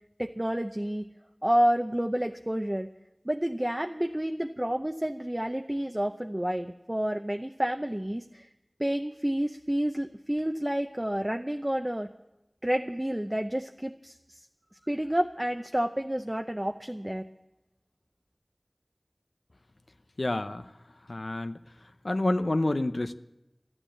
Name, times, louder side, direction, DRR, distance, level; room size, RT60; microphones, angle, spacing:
voice 1, 0.2-1.1 1.4-2.9 3.3-8.5 8.8-12.1 12.6-14.1 14.9-17.3, equal, 20° right, 5 dB, 0.6 m, -29 dB
voice 2, 20.2-20.7 21.1-21.6 22.0-23.2, left 2 dB, 80° left, 10 dB, 0.6 m, -28 dB
13.0 x 11.0 x 8.8 m, 0.96 s
wide cardioid pair, 40°, 0 cm